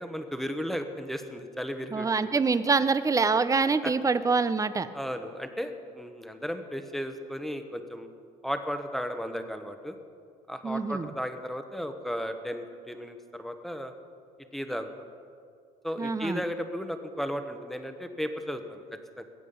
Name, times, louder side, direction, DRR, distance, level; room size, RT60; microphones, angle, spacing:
voice 1, 0.0-2.4 3.8-3.9 4.9-8.1 8.4-10.0 10.5-13.9 14.5-14.9 15.8-18.8 19.2-19.3, equal, ahead, 7 dB, 1.1 m, -35 dB
voice 2, 1.9-4.9 10.6-11.1 16.0-16.4, right 4 dB, 20° right, 13 dB, 0.6 m, -25 dB
20.5 x 8.4 x 5.4 m, 2.3 s
cardioid pair, 110°, 17 cm